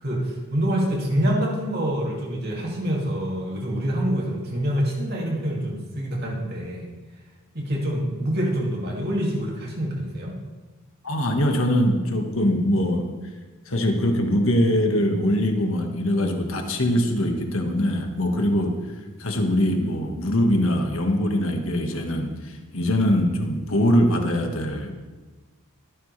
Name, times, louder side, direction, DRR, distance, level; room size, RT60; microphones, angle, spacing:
voice 1, 0.0-6.9 7.5-10.4 18.4-18.5, equal, 45° right, -2 dB, 2.5 m, -26 dB
voice 2, 11.0-13.1 13.7-18.8 19.2-24.9, equal, 65° left, 3 dB, 1.7 m, -22 dB
23.0 x 9.8 x 3.4 m, 1.2 s
head